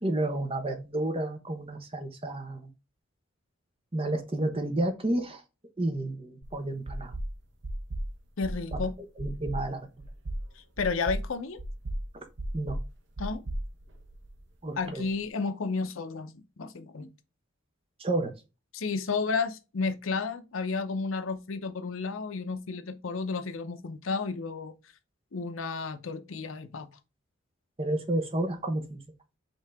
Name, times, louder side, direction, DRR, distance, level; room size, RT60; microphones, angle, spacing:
voice 1, 0.0-2.7 3.9-5.4 5.8-7.1 8.7-8.8 9.2-9.9 12.5-12.8 14.6-15.0 18.0-18.3 27.8-29.0, right 1 dB, 25° right, 0.8 m, -31 dB
sound 1, 6.4-6.5 6.9-7.3 7.6-8.1 8.4-8.9 9.2-9.6 10.0-10.4 10.8-11.2 11.6-12.0 12.4-12.8 13.2-14.4, right 1 dB, 55° right, 0.8 m, -34 dB
voice 2, 8.4-8.9 10.8-11.6 13.2-13.4 14.8-17.1 18.7-24.7 25.3-26.9, left 4 dB, 75° left, 0.6 m, -32 dB
5.4 x 2.7 x 3.4 m
head